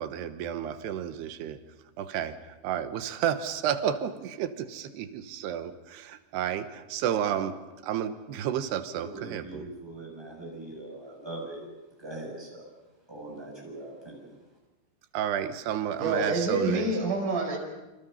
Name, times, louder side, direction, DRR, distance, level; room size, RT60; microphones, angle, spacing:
voice 1, 0.0-1.6 2.0-9.7 15.1-16.9, right 9 dB, 75° right, 10 dB, 3.2 m, -31 dB
voice 2, 9.0-11.7 12.0-12.7 13.1-14.3, right 2 dB, 5° right, -2 dB, 7.4 m, -41 dB
voice 3, 16.0-17.6, right 2 dB, 50° right, 1 dB, 6.3 m, -27 dB
28.0 x 27.0 x 5.7 m, 1.1 s
omnidirectional pair, 4.8 m